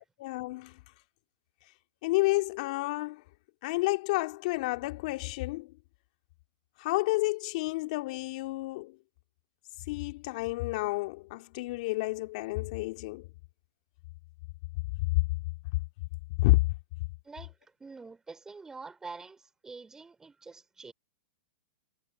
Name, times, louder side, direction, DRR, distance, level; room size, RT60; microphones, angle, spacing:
voice 1, 0.2-0.8 2.0-3.2 3.6-5.7 6.8-9.0 9.9-13.3 16.4-16.6, left 22 dB, 55° left, 2.4 m, -30 dB
voice 2, 17.2-20.9, right 4 dB, 10° right, 3.8 m, -46 dB
hypercardioid pair, 110°, 5 cm